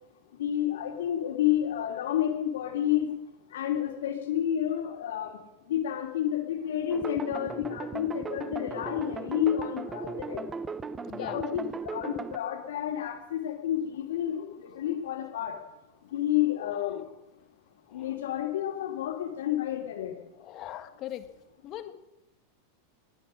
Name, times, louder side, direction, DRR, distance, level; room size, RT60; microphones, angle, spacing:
voice 1, 0.4-3.1 3.5-5.3 5.7-10.4 11.2-15.5 16.1-17.0 17.9-20.1, left 11 dB, 80° left, 4 dB, 2.8 m, -30 dB
sound 1, 6.9-12.4, right 5 dB, 20° right, 0.6 m, -37 dB
voice 2, 11.1-11.4 17.9-18.1 20.4-21.3 21.6-21.9, left 13 dB, 45° left, 10 dB, 1.4 m, -40 dB
20.5 x 9.8 x 6.4 m, 0.96 s
hypercardioid pair, 110°, 0 cm